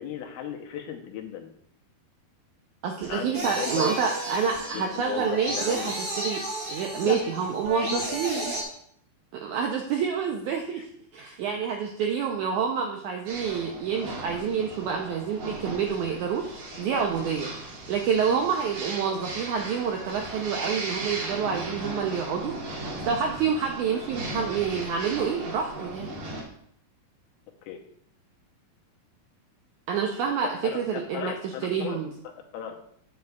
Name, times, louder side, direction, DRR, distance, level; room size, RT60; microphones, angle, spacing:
voice 1, 0.0-1.5 3.1-4.0 4.7-6.0 7.0-7.5 7.8-8.2 10.8-10.9 27.6-27.8 30.6-32.0 32.2-32.8, left 9 dB, 80° left, 3 dB, 2.6 m, -36 dB
voice 2, 2.8-6.4 6.7-8.5 9.4-10.8 11.1-17.5 17.9-22.5 23.1-26.1 29.9-31.3 31.6-32.1, right 6 dB, 90° right, 2 dB, 1.7 m, -28 dB
sound 1, 3.3-8.6, right 1 dB, 40° right, 1.5 m, -33 dB
sound 2, 13.3-26.4, right 2 dB, 65° right, 3.2 m, -37 dB
9.1 x 7.7 x 2.3 m, 0.67 s
omnidirectional pair, 4.2 m